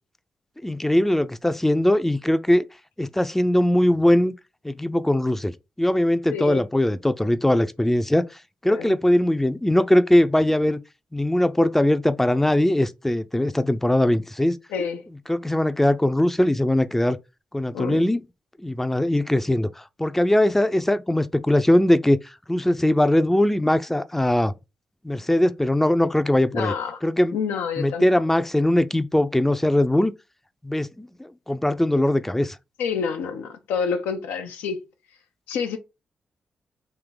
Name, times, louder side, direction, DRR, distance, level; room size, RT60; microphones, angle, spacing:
voice 1, 0.6-2.6 3.0-4.3 4.6-5.5 5.8-8.3 8.6-10.8 11.1-14.6 15.3-17.2 17.5-18.2 18.6-22.2 22.5-24.5 25.0-26.7 27.0-27.4 27.8-30.1 30.6-32.6, left 1 dB, 10° left, 0.4 m, -20 dB
voice 2, 6.3-6.6 8.7-8.9 14.7-15.0 17.7-18.0 26.5-27.0 27.3-28.0 32.8-34.8 35.5-35.8, left 6 dB, 85° left, 0.5 m, -28 dB
3.5 x 2.7 x 3.8 m
hypercardioid pair, 40°, 3 cm